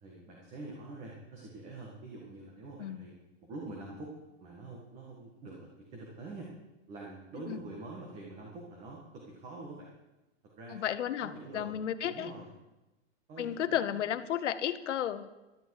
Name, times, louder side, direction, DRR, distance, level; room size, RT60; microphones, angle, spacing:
voice 1, 0.0-3.2 3.4-4.1 4.4-6.5 6.9-9.9 10.4-10.8 11.2-11.8 12.1-12.5 13.3-14.0, right 2 dB, 20° right, -2 dB, 1.7 m, -45 dB
voice 2, 10.7-12.3 13.4-15.3, left 10 dB, 75° left, 12 dB, 1.1 m, -33 dB
16.0 x 12.5 x 4.8 m, 1.0 s
supercardioid pair, 175°, 36 cm